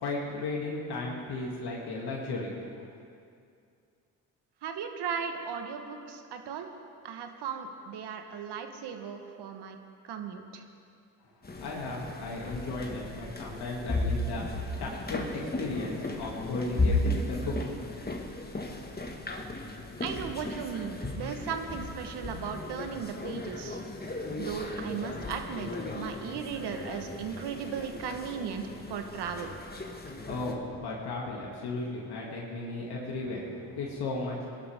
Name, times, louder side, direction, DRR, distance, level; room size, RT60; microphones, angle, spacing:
voice 1, 0.0-2.5 11.6-14.5 14.8-17.7 30.2-34.5, left 2 dB, 65° left, -3 dB, 2.6 m, -35 dB
voice 2, 4.6-6.7 7.0-9.8 10.0-10.6 20.0-23.8 24.4-29.5, right 7 dB, 65° right, 6 dB, 1.5 m, -36 dB
sound 1, 11.4-30.5, left 2 dB, 20° left, 1.8 m, -35 dB
20.5 x 12.0 x 3.6 m, 2.4 s
supercardioid pair, 60°, 43 cm